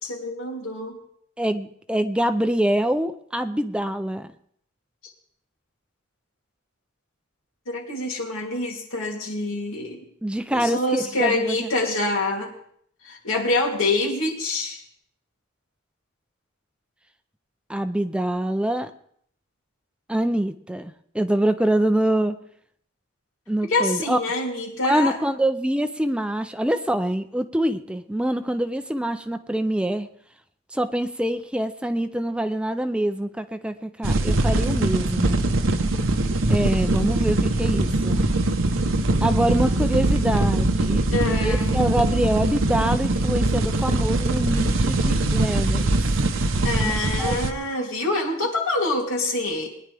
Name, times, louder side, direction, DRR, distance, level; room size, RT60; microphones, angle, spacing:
voice 1, 0.0-1.0 7.7-10.0 10.5-12.5 13.0-14.8 23.7-25.2 41.1-41.8 46.6-49.7, left 2 dB, 90° left, -1 dB, 3.0 m, -26 dB
voice 2, 1.4-4.3 10.2-11.7 17.7-18.9 20.1-22.4 23.5-24.2 24.8-30.1 30.7-35.4 36.5-38.2 39.2-41.1 41.4-45.9 46.8-47.4, right 1 dB, 5° right, 9 dB, 0.5 m, -25 dB
sound 1, 34.0-47.5, right 2 dB, 70° right, 1.0 m, -22 dB
21.0 x 10.5 x 3.4 m, 0.65 s
head